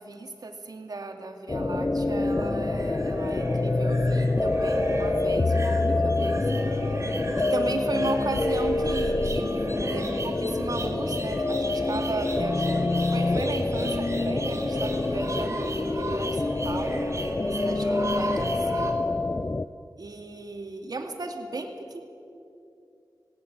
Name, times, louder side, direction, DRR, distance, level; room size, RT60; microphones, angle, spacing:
voice 1, 0.0-6.5 7.4-9.5 9.9-17.0 17.4-19.0 20.0-22.0, right 3 dB, 60° right, 4 dB, 2.4 m, -35 dB
sound 1, 1.5-19.7, left 2 dB, 30° left, 0.6 m, -26 dB
sound 2, 2.0-18.9, right 2 dB, 40° right, 3.2 m, -36 dB
18.5 x 18.0 x 8.6 m, 2.6 s
cardioid pair, 55°, 7 cm